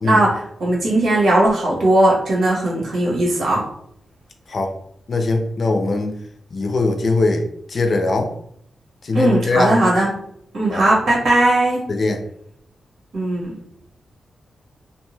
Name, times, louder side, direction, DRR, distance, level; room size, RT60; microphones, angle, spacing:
voice 1, 0.0-3.6 9.1-10.1 10.5-11.8 13.1-13.5, right 1 dB, 90° right, -4 dB, 1.2 m, -18 dB
voice 2, 5.1-6.1 6.5-8.3 9.0-9.8 10.7-10.8 11.9-12.2, left 3 dB, 50° left, 5 dB, 0.4 m, -20 dB
2.6 x 2.2 x 3.1 m, 0.69 s
wide cardioid pair, 130°, 0 cm